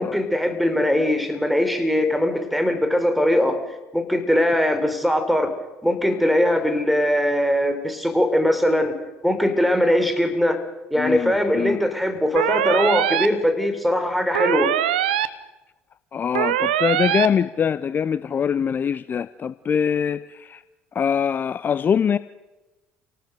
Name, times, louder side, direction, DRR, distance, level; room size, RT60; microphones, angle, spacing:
voice 1, 0.0-3.6 3.9-5.5 5.8-8.9 9.2-10.6 10.9-14.7, left 1 dB, ahead, 7 dB, 4.7 m, -21 dB
voice 2, 11.0-11.9 16.1-20.6 20.9-22.2, left 7 dB, 35° left, 16 dB, 0.7 m, -23 dB
sound 1, 12.4-13.3 14.4-15.3 16.4-17.3, right 12 dB, 75° right, 1.0 m, -22 dB
28.5 x 18.5 x 6.8 m, 1.1 s
figure-of-eight pair, 55°, 5 cm